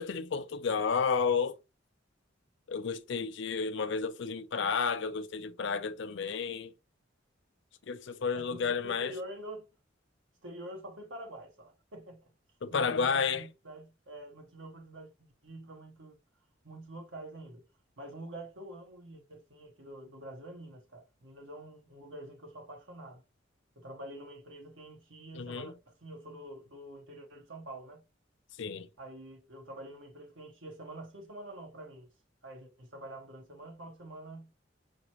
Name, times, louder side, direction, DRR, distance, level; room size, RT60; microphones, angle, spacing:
voice 1, 0.0-1.5 2.7-6.7 7.9-9.1 12.6-13.5 25.3-25.7 28.6-28.9, left 5 dB, 70° left, 0.5 m, -31 dB
voice 2, 8.3-9.7 10.4-12.3 12.7-16.2 16.6-17.6 18.0-23.2 23.8-28.0 29.0-32.1 32.4-34.5, right 1 dB, 80° right, 1.2 m, -46 dB
5.9 x 2.1 x 3.0 m
head